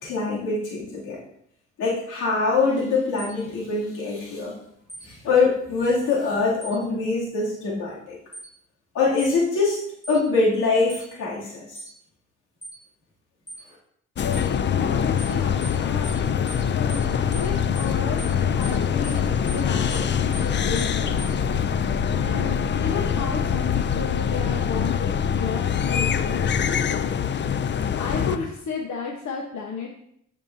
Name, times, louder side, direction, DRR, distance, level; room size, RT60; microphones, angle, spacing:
voice 1, 0.0-1.2 1.8-4.6 5.0-8.2 8.9-9.8 10.1-11.8, left 3 dB, 85° left, -5 dB, 3.0 m, -23 dB
sound 1, 3.2-3.4 4.9-5.1 6.6-6.8 8.3-8.5 9.2-9.4 10.0-10.2 10.9-11.1 11.8-11.9 12.6-12.8 13.5-13.6 14.3-14.5 15.2-15.4 15.6-15.8 16.0-16.2 16.5-16.6 16.9-17.1 17.3-17.5 17.8-17.9 18.2-18.4 18.6-18.8 19.0-19.2 19.5-19.6 19.9-20.1 20.3-20.5 20.8-20.9 21.2-21.3, right 2 dB, 15° left, 1.9 m, -40 dB
sound 2, 14.2-28.4, left 7 dB, 40° left, 0.5 m, -24 dB
voice 2, 14.8-16.1 16.7-21.2 22.2-25.1 25.3-26.5 26.8-27.1 27.9-29.9, left 5 dB, 70° left, -1 dB, 1.3 m, -33 dB
14.5 x 5.2 x 2.8 m, 0.71 s
cardioid pair, 90°, 30 cm